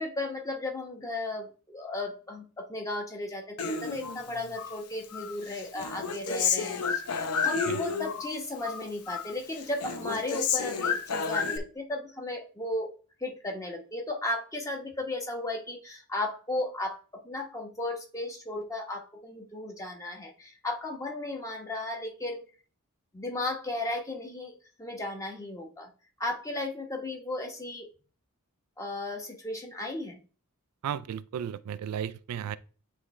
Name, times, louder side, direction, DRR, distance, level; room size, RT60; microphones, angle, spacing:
voice 1, 0.0-7.0 7.4-12.9 13.2-22.4 23.1-25.9 26.2-27.9 28.8-30.2, left 2 dB, 15° left, 1.2 m, -35 dB
Human voice, 3.6-4.8 5.1-8.3 8.6-9.3 9.6-11.6, left 5 dB, 85° left, 0.8 m, -31 dB
voice 2, 30.8-32.6, right 9 dB, 85° right, 0.3 m, -34 dB
9.6 x 3.3 x 3.2 m
head